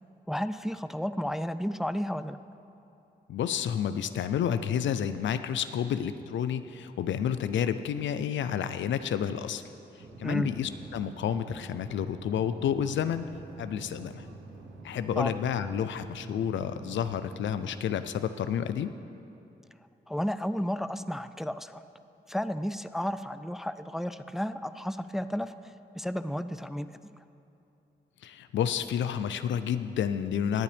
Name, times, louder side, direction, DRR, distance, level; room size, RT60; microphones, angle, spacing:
voice 1, 0.3-2.4 10.2-10.5 15.2-15.3 20.1-21.8 22.3-27.1, equal, ahead, 12 dB, 0.4 m, -32 dB
voice 2, 3.3-9.6 10.2-13.3 13.6-14.3 14.8-18.9 28.2-30.6, left 8 dB, 80° left, 11 dB, 0.5 m, -30 dB
sound 1, 10.0-17.8, right 3 dB, 80° right, 1.0 m, -46 dB
18.0 x 8.2 x 3.4 m, 2.8 s
cardioid pair, 50°, 19 cm